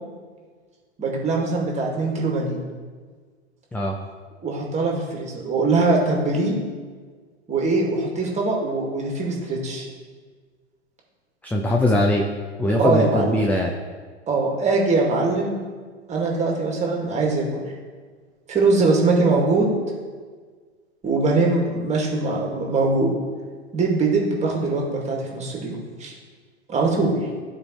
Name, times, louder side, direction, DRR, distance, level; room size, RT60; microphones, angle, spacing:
voice 1, 1.0-2.6 4.4-6.5 7.5-9.9 12.8-13.4 14.3-15.6 16.1-17.7 18.5-19.8 21.0-23.1 23.7-26.1 26.7-27.1, right 3 dB, 20° right, -1 dB, 2.0 m, -22 dB
voice 2, 11.4-12.2 12.6-13.7, left 1 dB, 5° left, 1 dB, 0.4 m, -21 dB
14.0 x 4.7 x 3.1 m, 1.5 s
figure-of-eight pair, 95°, 34 cm